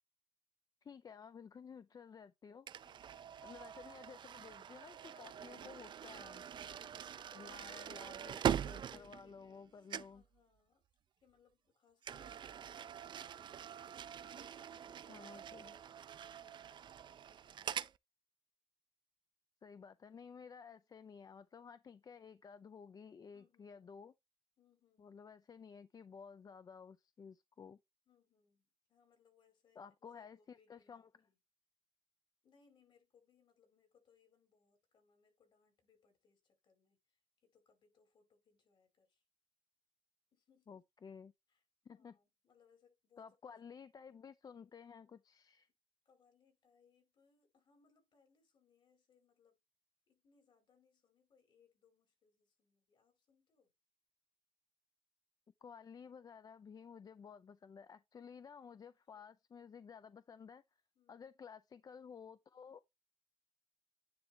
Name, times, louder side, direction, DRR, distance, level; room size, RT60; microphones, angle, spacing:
voice 1, 0.8-2.7 3.4-6.4 7.3-10.2 15.1-15.7 19.6-24.1 25.0-27.8 29.8-31.1 40.7-41.3 41.8-42.2 43.2-45.7 55.6-60.6 61.1-62.8, left 6 dB, 45° left, 0.5 m, -54 dB
voice 2, 2.7-3.4 6.4-8.4 8.9-9.7 10.1-10.8 11.2-13.9 14.3-15.3 15.6-17.7 23.3-24.0 24.6-25.2 28.1-31.4 32.4-39.2 40.3-40.8 41.5-41.6 41.9-43.5 46.1-49.6 50.1-53.7 58.8-59.4 60.9-61.3, left 6 dB, 65° left, 5.2 m, -71 dB
sound 1, 2.7-9.6 9.9-10.2 12.0-18.0, right 9 dB, 60° right, 0.5 m, -43 dB
9.6 x 3.2 x 4.5 m
cardioid pair, 95°, 9 cm